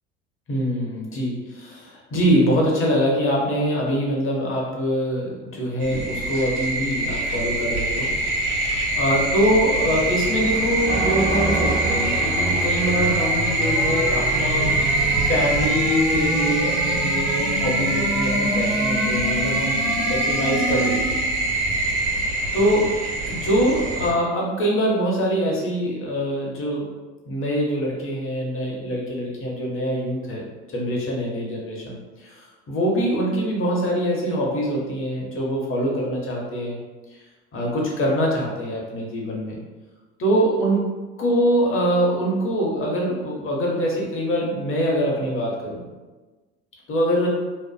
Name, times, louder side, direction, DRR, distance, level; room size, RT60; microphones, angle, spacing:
voice 1, 0.5-8.1 8.4-8.6 9.0-14.7 15.2-19.8 20.1-21.2 22.5-23.0 23.2-26.9 27.3-30.5 30.7-36.8 37.5-39.6 40.2-45.9 46.9-47.3, equal, 35° left, -2 dB, 0.9 m, -24 dB
sound 1, 5.8-24.1, right 1 dB, 60° right, 0.9 m, -24 dB
sound 2, 9.3-21.4, right 1 dB, 5° right, 0.4 m, -29 dB
sound 3, 10.9-14.3, right 1 dB, 35° right, 0.8 m, -30 dB
2.5 x 2.1 x 2.3 m, 1.2 s
hypercardioid pair, 70°, 36 cm